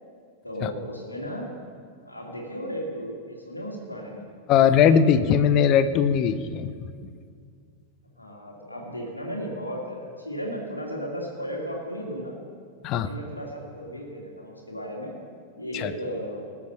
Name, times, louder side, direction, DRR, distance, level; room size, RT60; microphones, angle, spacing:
voice 1, 0.4-1.5 2.0-4.2 8.2-12.3 12.9-15.1 15.6-16.4, equal, 85° left, -1 dB, 2.4 m, -35 dB
voice 2, 4.5-6.7 12.8-13.1 15.7-15.9, left 7 dB, 40° left, 12 dB, 0.7 m, -20 dB
18.5 x 7.3 x 5.6 m, 2.1 s
figure-of-eight pair, 90°, 0 cm